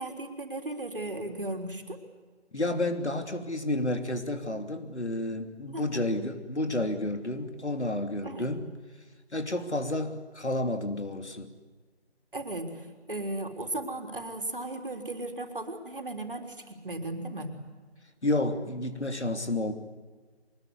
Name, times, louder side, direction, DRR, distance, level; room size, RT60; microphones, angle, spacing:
voice 1, 0.0-2.0 5.7-6.0 8.2-8.5 12.3-17.5, right 2 dB, 50° right, 5 dB, 3.7 m, -36 dB
voice 2, 2.5-8.7 9.3-11.5 18.2-19.7, left 1 dB, 75° left, 7 dB, 3.2 m, -30 dB
24.5 x 21.0 x 9.6 m, 1.4 s
figure-of-eight pair, 175°, 34 cm